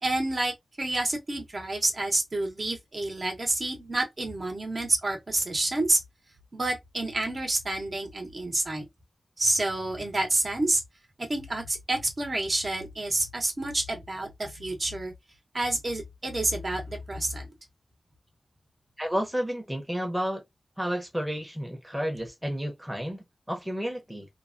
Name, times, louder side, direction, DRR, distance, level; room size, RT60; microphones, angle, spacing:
voice 1, 0.0-6.0 6.5-8.9 9.4-10.8 11.2-15.1 15.5-17.5, right 2 dB, 45° right, 0.9 m, -28 dB
voice 2, 19.0-20.4 20.8-24.3, equal, 5° right, 0.8 m, -31 dB
3.1 x 2.1 x 2.5 m
wide cardioid pair, 105°, 0 cm